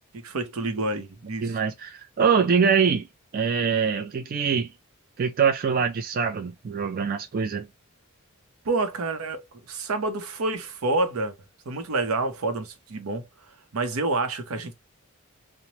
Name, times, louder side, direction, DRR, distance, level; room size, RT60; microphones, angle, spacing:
voice 1, 0.1-1.6 8.6-11.3 11.7-13.2 13.7-14.7, right 2 dB, 80° right, 0.6 m, -28 dB
voice 2, 1.4-3.1 3.3-4.7 5.2-7.7, right 6 dB, 45° right, 0.3 m, -24 dB
3.0 x 2.0 x 2.7 m
head